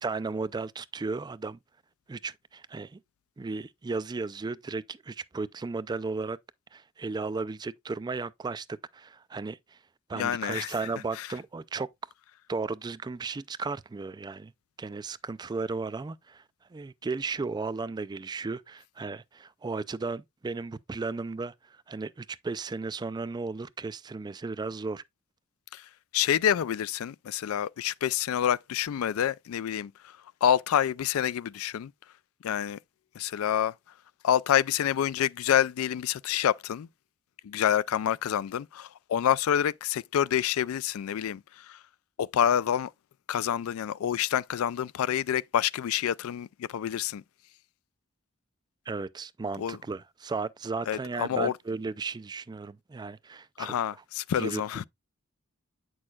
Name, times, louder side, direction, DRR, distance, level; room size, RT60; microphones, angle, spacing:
voice 1, 0.0-1.6 2.1-3.0 3.4-6.4 6.7-8.7 8.9-9.8 10.1-11.9 12.5-14.5 14.8-16.4 16.7-25.0 48.9-53.8 54.4-54.6, right 4 dB, 20° right, 0.3 m, -35 dB
voice 2, 10.1-10.7 11.2-11.3 25.7-25.8 26.1-29.9 30.4-31.9 32.4-32.8 33.2-33.7 34.2-36.9 37.4-41.4 41.7-41.8 42.2-42.9 43.3-47.2 49.6-49.8 50.9-51.5 53.6-54.8, left 9 dB, 75° left, 0.3 m, -27 dB
8.6 x 6.3 x 2.3 m
head